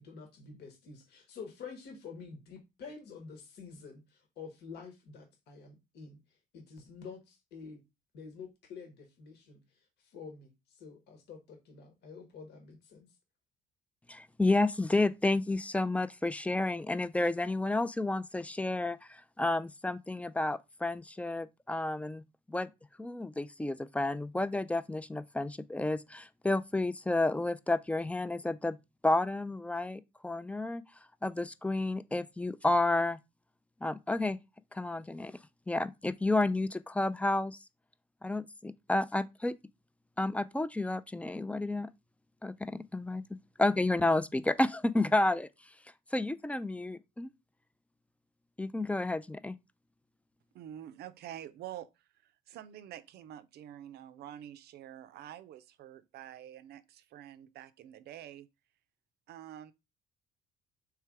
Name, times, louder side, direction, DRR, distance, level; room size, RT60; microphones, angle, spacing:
voice 1, 0.0-7.8 8.1-13.1, left 5 dB, 70° left, 1.3 m, -48 dB
voice 2, 14.1-22.2 22.5-22.7 23.0-28.8 29.0-30.8 31.2-33.2 33.8-34.4 34.7-35.4 35.7-37.6 38.2-39.6 40.2-41.9 42.4-43.2 43.6-45.7 46.1-47.3 48.6-49.6, left 2 dB, 10° left, 0.3 m, -31 dB
voice 3, 50.5-58.5 59.3-59.7, right 11 dB, 65° right, 0.5 m, -47 dB
3.3 x 3.3 x 4.6 m
supercardioid pair, 70°, 18 cm